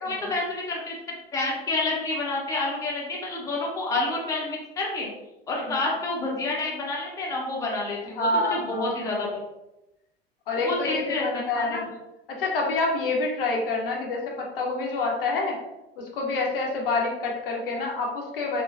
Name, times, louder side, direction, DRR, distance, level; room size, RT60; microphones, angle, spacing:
voice 1, 0.0-0.9 1.3-5.1 5.5-9.3 10.6-11.9, left 2 dB, 10° left, -3 dB, 0.6 m, -29 dB
voice 2, 8.2-9.0 10.5-11.9 12.3-15.6 16.0-18.6, left 3 dB, 60° left, 0 dB, 0.6 m, -27 dB
3.0 x 2.1 x 2.4 m, 0.93 s
figure-of-eight pair, 80°, 31 cm